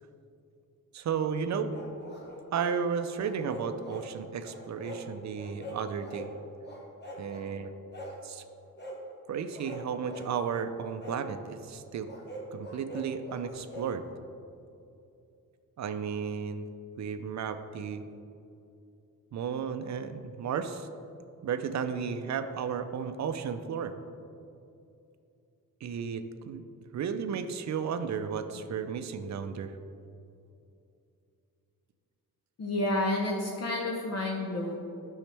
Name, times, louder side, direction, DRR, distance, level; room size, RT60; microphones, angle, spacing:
voice 1, 0.9-1.7 2.5-6.3 7.2-7.7 8.2-8.4 9.3-12.1 12.5-14.0 15.8-16.7 17.0-18.0 19.3-20.9 21.4-23.9 25.8-26.6 26.9-29.7, right 6 dB, 50° right, 9 dB, 0.5 m, -33 dB
sound 1, 1.7-2.8 3.2-4.1 4.4-5.0 5.3-6.3 6.6-7.5 7.9-8.2 8.8-9.0 9.5-10.3 11.0-11.2 12.0-13.9, right 1 dB, 30° left, 1.3 m, -43 dB
voice 2, 32.6-34.7, left 1 dB, 45° left, -1 dB, 0.8 m, -30 dB
10.5 x 6.4 x 3.3 m, 2.6 s
wide cardioid pair, 150°, 36 cm